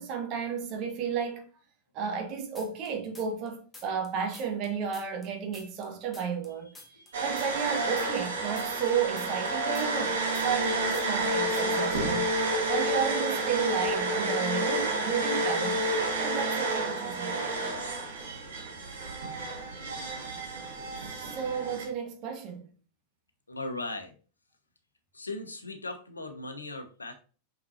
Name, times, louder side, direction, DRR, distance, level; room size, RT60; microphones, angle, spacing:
voice 1, 0.0-1.4 1.9-6.7 7.2-10.2 10.4-12.3 12.7-15.8 16.2-17.8 21.2-22.7, right 7 dB, 40° right, 1.6 m, -32 dB
sound 1, 2.6-3.5 3.7-6.5 6.8-10.7 10.9-11.3 11.5-11.9, left 2 dB, 10° left, 1.6 m, -50 dB
voice 2, 6.8-7.2 23.5-24.1 25.1-27.1, left 2 dB, 80° left, 1.0 m, -38 dB
sound 2, 7.1-21.8, right 2 dB, 60° right, 1.7 m, -30 dB
6.0 x 6.0 x 2.8 m
figure-of-eight pair, 90°, 0 cm